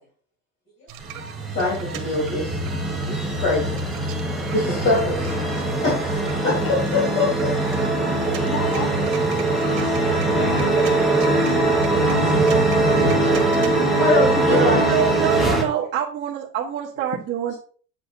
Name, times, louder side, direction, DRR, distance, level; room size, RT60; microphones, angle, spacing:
sound 1, 0.9-13.7, right 9 dB, 80° right, 1.5 m, -37 dB
sound 2, 1.0-15.6, right 2 dB, ahead, 1.2 m, -21 dB
voice 1, 1.3-2.5 3.1-3.8 4.5-5.3 5.8-6.5 7.1-8.3 11.3-12.0 12.3-12.4 13.0-14.8, left 2 dB, 45° left, -6 dB, 4.0 m, -25 dB
voice 2, 8.5-11.2 12.2-12.3 15.5-15.7, left 5 dB, 70° left, 0 dB, 1.5 m, -34 dB
voice 3, 14.5-17.5, right 9 dB, 35° right, -6 dB, 1.5 m, -26 dB
8.6 x 7.6 x 2.8 m, 0.42 s
cardioid pair, 175°, 30 cm